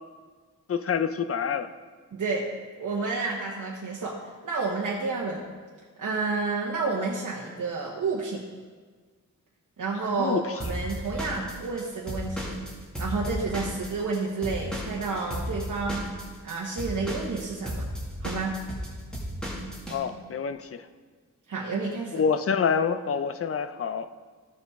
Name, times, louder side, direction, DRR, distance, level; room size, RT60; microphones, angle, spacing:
voice 1, 0.7-1.7 10.2-10.6 19.9-20.9 22.1-24.1, left 6 dB, 50° left, 10 dB, 0.5 m, -27 dB
voice 2, 2.1-2.5 2.8-5.5 6.0-8.4 9.8-12.6 13.0-16.1 16.4-17.8 18.2-18.6 21.5-22.2, right 4 dB, 85° right, -4 dB, 1.1 m, -30 dB
Drum kit / Drum, 10.6-14.2 14.4-20.0, equal, 5° left, 2.1 m, -34 dB
14.0 x 7.0 x 3.6 m, 1.5 s
wide cardioid pair, 145°, 30 cm